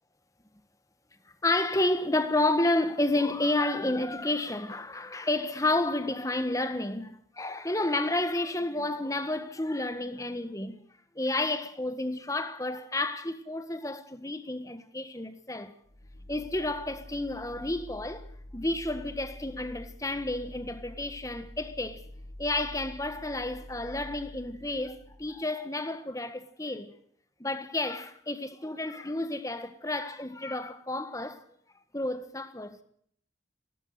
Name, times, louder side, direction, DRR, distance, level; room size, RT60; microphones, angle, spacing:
voice 1, 1.4-10.8 11.1-15.7 16.3-22.0 22.4-26.9 27.4-31.4 31.9-32.8, left 2 dB, 15° left, 1.6 m, -31 dB
sound 1, 15.8-25.5, left 1 dB, 90° left, 3.6 m, -47 dB
20.5 x 17.5 x 8.2 m
head